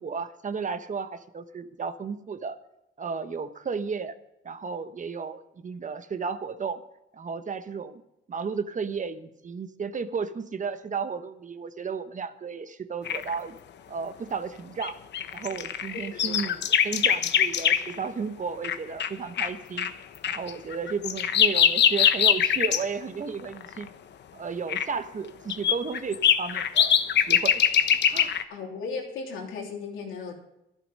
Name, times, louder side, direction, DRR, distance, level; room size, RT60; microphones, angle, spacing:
voice 1, 0.0-2.6 3.0-4.1 4.4-6.8 7.1-8.0 8.3-13.6 13.9-15.0 15.3-19.9 20.3-23.9 24.3-27.0 27.3-27.6 28.1-28.3, right 5 dB, 40° right, 10 dB, 1.1 m, -33 dB
sound 1, 13.0-13.3 14.8-18.0 18.6-18.7 19.0-19.1 19.4-19.5 19.8-19.9 20.2-22.8 23.6-23.8 24.7-24.8 25.5-28.4, left 9 dB, 60° left, 1.0 m, -23 dB
voice 2, 28.5-30.3, left 4 dB, 90° left, 0 dB, 3.3 m, -36 dB
12.0 x 11.5 x 5.4 m, 0.88 s
cardioid pair, 90°, 20 cm